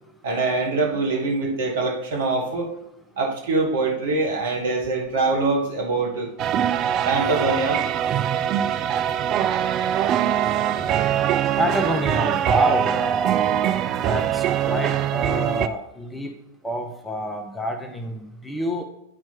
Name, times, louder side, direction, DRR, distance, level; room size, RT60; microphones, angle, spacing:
voice 1, 0.2-2.7 3.2-6.3 7.0-7.8, right 3 dB, 60° right, 0 dB, 1.5 m, -23 dB
sound 1, 6.4-15.7, right 10 dB, 35° right, 0.3 m, -22 dB
voice 2, 11.6-13.7 14.0-16.3 16.6-18.8, equal, 5° left, 5 dB, 0.7 m, -28 dB
10.0 x 4.4 x 2.9 m, 0.82 s
figure-of-eight pair, 90°, 0 cm